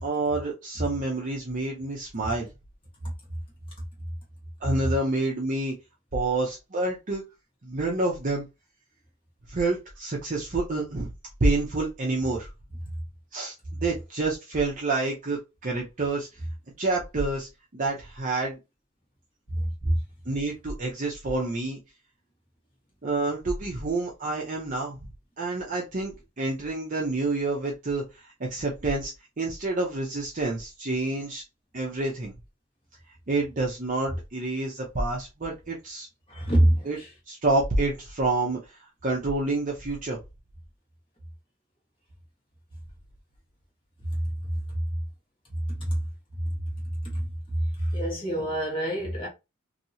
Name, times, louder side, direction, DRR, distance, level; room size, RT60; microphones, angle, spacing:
voice 1, 0.0-2.5 4.6-5.7 6.1-7.2 7.6-8.4 9.5-11.1 11.4-12.5 13.3-13.5 13.8-16.3 16.8-18.6 20.3-21.8 23.0-25.1 25.4-29.1 29.4-31.4 31.7-32.3 33.3-36.1 36.8-37.0 37.3-40.2, right 2 dB, 35° right, 0.6 m, -28 dB
voice 2, 19.5-19.9 36.3-37.1 45.8-46.0 47.0-47.2 47.8-49.3, right 1 dB, 25° left, 1.3 m, -25 dB
2.9 x 2.7 x 2.7 m
head